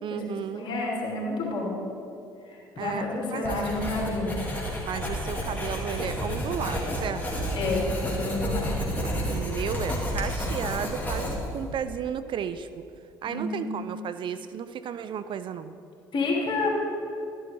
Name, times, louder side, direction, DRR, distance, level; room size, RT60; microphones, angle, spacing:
voice 1, 0.0-0.7 2.8-3.6 4.8-7.5 8.8-12.7 13.2-15.7, right 8 dB, 45° right, 12 dB, 0.4 m, -34 dB
voice 2, 0.5-1.7 2.5-4.4 7.5-8.8 13.3-13.9 16.1-16.7, left 3 dB, 50° left, -3 dB, 2.9 m, -29 dB
Writing, 3.4-11.6, equal, 15° left, 2.8 m, -30 dB
11.5 x 11.0 x 3.7 m, 2.7 s
hypercardioid pair, 55°, 11 cm